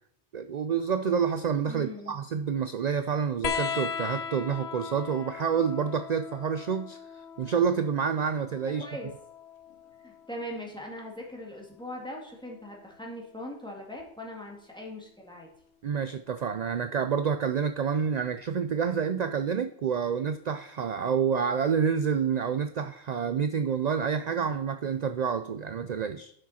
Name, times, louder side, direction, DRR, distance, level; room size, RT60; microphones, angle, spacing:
voice 1, 0.3-8.9 15.8-26.3, right 7 dB, 50° right, 10 dB, 0.5 m, -28 dB
voice 2, 1.7-2.2 8.8-9.1 10.0-15.5, equal, 5° left, -2 dB, 2.1 m, -40 dB
sound 1, 3.4-10.5 11.9-12.7 14.0-14.1, left 7 dB, 80° left, 0.9 m, -38 dB
11.5 x 6.2 x 4.2 m, 0.68 s
omnidirectional pair, 1.1 m